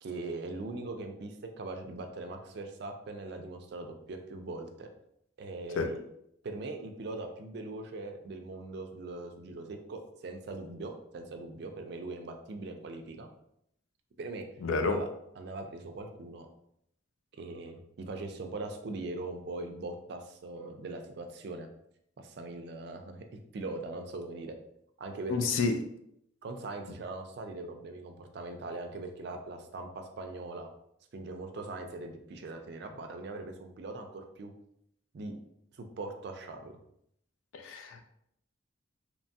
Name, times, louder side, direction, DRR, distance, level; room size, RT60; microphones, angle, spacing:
voice 1, 0.0-4.9 5.4-6.0 6.4-13.3 14.2-14.5 14.8-15.1 15.4-16.5 17.4-21.7 22.2-24.6 25.0-25.5 26.4-30.7 31.1-34.5 35.1-35.4 35.7-36.7, right 2 dB, 55° right, 4 dB, 0.3 m, -41 dB
voice 2, 14.6-15.0 25.3-25.8 37.5-38.0, left 4 dB, 85° left, 6 dB, 0.4 m, -29 dB
2.9 x 2.2 x 2.6 m, 0.74 s
head